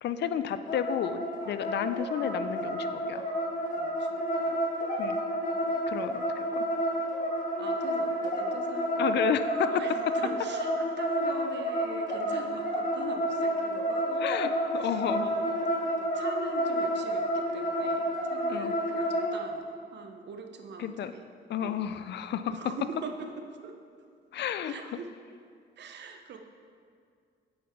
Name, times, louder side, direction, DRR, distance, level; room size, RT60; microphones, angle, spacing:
voice 1, 0.0-3.2 5.0-5.2 5.9-6.7 9.0-9.7 14.2-15.3 18.5-18.7 20.8-21.1 21.5-22.6 24.3-24.7, left 9 dB, 60° left, 11 dB, 0.4 m, -32 dB
sound 1, 0.7-19.3, equal, 40° left, 1.4 m, -30 dB
voice 2, 3.7-4.5 7.6-9.2 9.7-14.3 14.8-15.0 15.2-15.6 15.9-21.2 21.6-21.9 22.5-23.3 23.6-23.7 24.6-25.1 25.8-26.4, right 5 dB, 60° right, 5 dB, 0.8 m, -42 dB
8.6 x 5.5 x 4.4 m, 2.2 s
cardioid pair, 90°, 20 cm